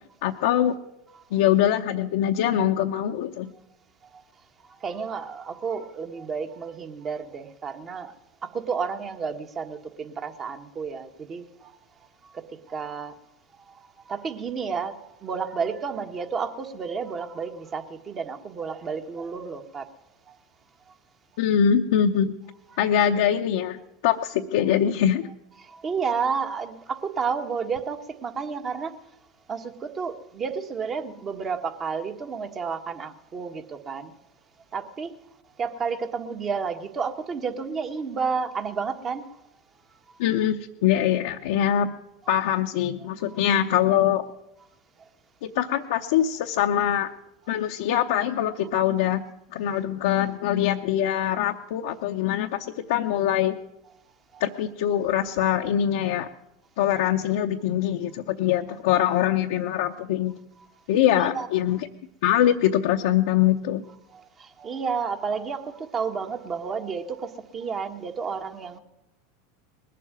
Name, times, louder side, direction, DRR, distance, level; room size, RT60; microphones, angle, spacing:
voice 1, 0.2-0.7 1.3-3.5 21.4-22.3 22.8-23.8 24.0-25.3 40.2-41.9 42.3-44.2 45.4-47.1 47.5-49.2 49.5-53.6 54.4-56.3 56.8-60.4 60.9-61.8 62.2-63.8, left 10 dB, 70° left, 2 dB, 0.7 m, -23 dB
voice 2, 4.7-8.1 8.4-11.8 12.3-12.4 12.7-13.1 13.7-19.8 20.3-20.4 25.6-29.0 29.5-34.1 34.7-35.1 35.6-39.3 40.1-40.2 43.3-43.4 54.3-54.4 61.2-61.5 64.1-68.8, right 5 dB, 35° right, 7 dB, 1.6 m, -31 dB
20.0 x 7.6 x 9.2 m, 0.87 s
hypercardioid pair, 95°, 0 cm